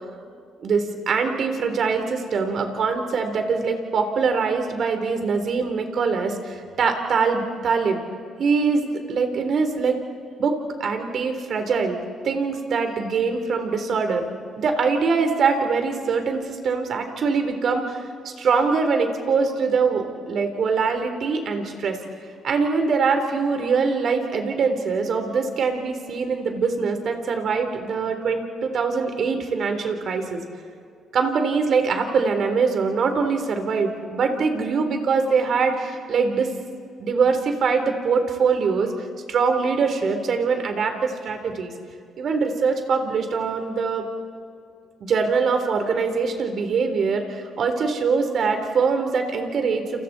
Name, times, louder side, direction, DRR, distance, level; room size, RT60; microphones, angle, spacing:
voice 1, 0.6-8.0 8.4-10.0 10.4-10.5 10.8-12.0 12.2-14.3 14.6-22.0 22.4-30.4 31.1-36.5 37.0-38.9 39.3-41.7 42.2-44.0 45.0-50.0, right 5 dB, 60° right, 5 dB, 3.7 m, -23 dB
29.5 x 29.0 x 4.3 m, 2.3 s
cardioid pair, 90°, 0 cm